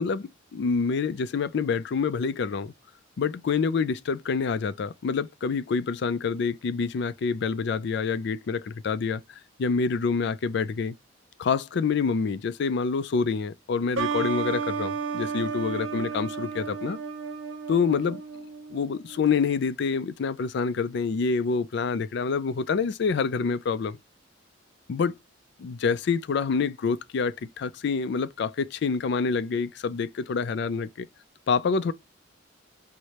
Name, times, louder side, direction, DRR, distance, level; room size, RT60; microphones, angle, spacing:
voice 1, 0.0-2.7 3.2-9.2 9.6-10.9 11.4-17.0 17.7-18.2 18.7-24.0 24.9-25.1 25.6-31.1 31.5-31.9, left 5 dB, 60° left, 0.4 m, -27 dB
sound 1, 14.0-19.4, right 5 dB, 80° right, 0.7 m, -32 dB
4.7 x 2.1 x 2.8 m
head